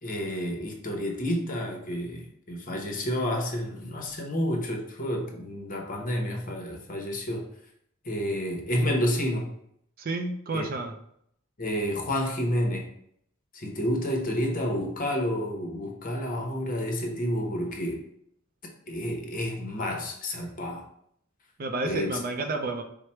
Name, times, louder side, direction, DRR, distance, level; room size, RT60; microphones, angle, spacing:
voice 1, 0.0-7.5 8.0-9.5 10.5-10.7 11.6-12.9 13.5-18.0 18.9-20.8 21.8-22.2, equal, 40° left, 1 dB, 0.9 m, -30 dB
voice 2, 10.0-10.9 21.6-22.8, right 3 dB, 45° right, 5 dB, 0.5 m, -30 dB
4.8 x 2.1 x 4.3 m, 0.70 s
head